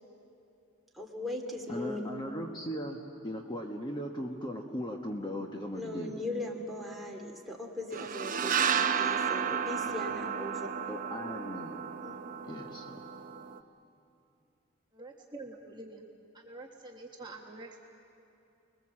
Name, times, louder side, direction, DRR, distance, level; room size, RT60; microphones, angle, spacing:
voice 1, 0.9-2.0 5.7-10.7 12.0-12.2, left 1 dB, ahead, -2 dB, 2.7 m, -39 dB
voice 2, 1.7-3.0 3.2-6.1 10.9-11.8 12.4-13.0, equal, 20° left, 2 dB, 1.2 m, -38 dB
sound 1, 7.9-13.6, right 7 dB, 40° right, 0.8 m, -32 dB
voice 3, 14.9-16.1 16.3-17.8, right 2 dB, 20° right, 0 dB, 1.3 m, -46 dB
30.0 x 21.0 x 7.5 m, 2.7 s
head